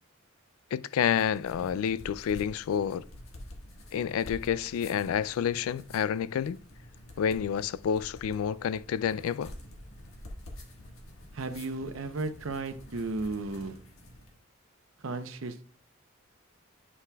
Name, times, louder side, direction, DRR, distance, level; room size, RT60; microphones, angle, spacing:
voice 1, 0.7-3.0 3.9-6.6 7.2-9.5, left 8 dB, 90° left, 0.3 m, -29 dB
sound 1, 0.9-14.4, left 1 dB, 75° left, 1.5 m, -48 dB
voice 2, 11.3-13.8 15.0-15.6, right 3 dB, 70° right, 0.7 m, -34 dB
9.4 x 5.7 x 2.3 m
head